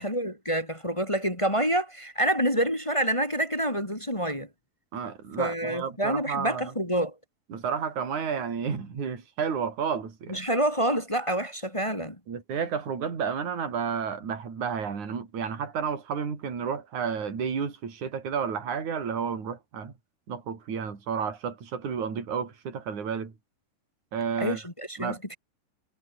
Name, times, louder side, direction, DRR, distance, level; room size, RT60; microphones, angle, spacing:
voice 1, 0.0-4.5 5.4-7.1 10.3-12.1 24.4-25.3, right 1 dB, 10° left, 1.8 m, -27 dB
voice 2, 4.9-6.7 7.5-10.4 12.3-19.9 20.3-23.3 24.1-24.6 25.0-25.2, right 6 dB, 45° right, 5.6 m, -31 dB
omnidirectional pair, 5.1 m